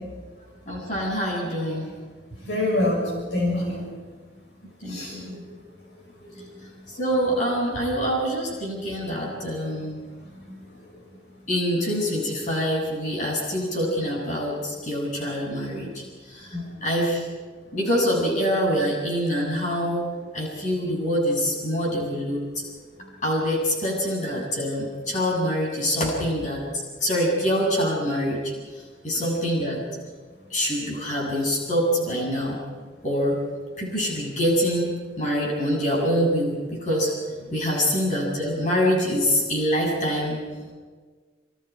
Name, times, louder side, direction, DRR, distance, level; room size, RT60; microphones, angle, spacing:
voice 1, 0.7-1.9 4.8-5.4 6.9-10.0 11.5-17.2 17.7-22.5 23.2-26.6 27.0-28.5 29.0-29.8 30.5-32.6 33.0-33.4 33.8-37.1 37.4-40.4, equal, 40° left, -2 dB, 7.7 m, -25 dB
voice 2, 2.4-3.9 4.9-5.4 6.2-6.4 10.5-10.6 16.5-16.7, left 1 dB, 70° left, -2 dB, 6.5 m, -26 dB
29.0 x 26.5 x 4.9 m, 1.5 s
head